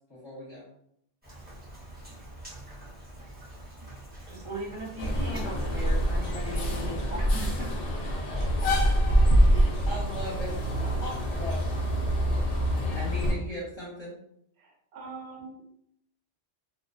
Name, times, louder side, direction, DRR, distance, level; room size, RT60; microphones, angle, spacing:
voice 1, 0.1-0.7 7.6-7.7 8.3-8.7 9.5-11.8 12.9-14.2, left 1 dB, 30° left, -8 dB, 0.7 m, -39 dB
Rain, 1.2-6.6, right 1 dB, 10° right, 0.6 m, -46 dB
voice 2, 4.3-7.6, right 1 dB, 55° right, -2 dB, 0.3 m, -38 dB
sound 1, 5.0-13.3, equal, 75° left, 0.3 m, -25 dB
voice 3, 14.6-15.6, right 4 dB, 70° right, 0 dB, 0.8 m, -43 dB
2.3 x 2.2 x 2.4 m, 0.72 s
omnidirectional pair, 1.2 m